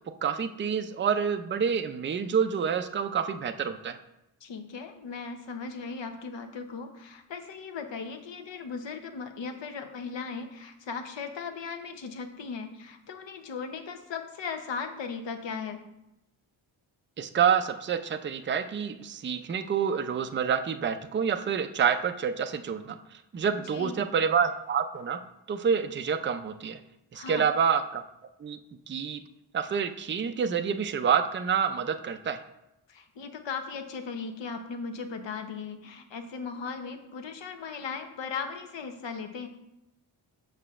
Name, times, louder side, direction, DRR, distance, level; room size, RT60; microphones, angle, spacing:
voice 1, 0.2-4.0 17.2-23.0 23.3-25.2 25.5-26.8 27.1-28.0 28.4-28.6 28.9-29.2 29.5-32.4, right 7 dB, 25° right, 9 dB, 0.4 m, -27 dB
voice 2, 4.4-15.8 23.5-24.0 27.1-27.5 32.9-39.5, left 5 dB, 65° left, 6 dB, 0.9 m, -37 dB
6.9 x 5.6 x 2.4 m, 0.88 s
cardioid pair, 70°, 47 cm